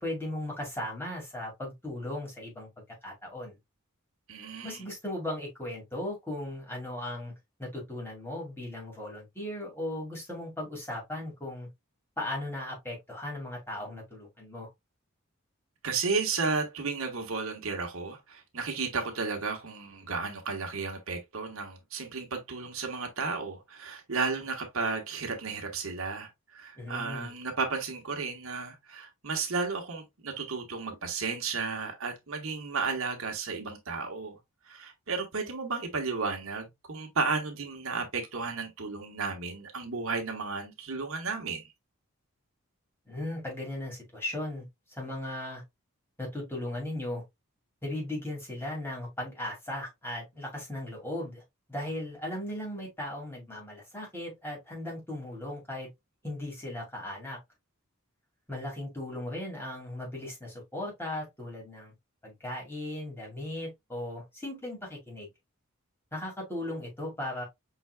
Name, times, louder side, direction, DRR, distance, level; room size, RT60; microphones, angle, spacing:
voice 1, 0.0-2.7 3.0-3.5 4.6-7.3 7.6-11.7 12.2-14.7 26.8-27.3 43.1-44.6 44.9-45.6 46.2-47.2 47.8-51.4 51.7-55.9 56.2-57.4 58.5-61.9 62.2-65.3 66.1-67.4, left 1 dB, 10° left, 2.2 m, -37 dB
voice 2, 4.3-4.8 15.8-34.4 34.6-41.7, right 4 dB, 70° right, 1.2 m, -33 dB
5.6 x 3.9 x 2.2 m
head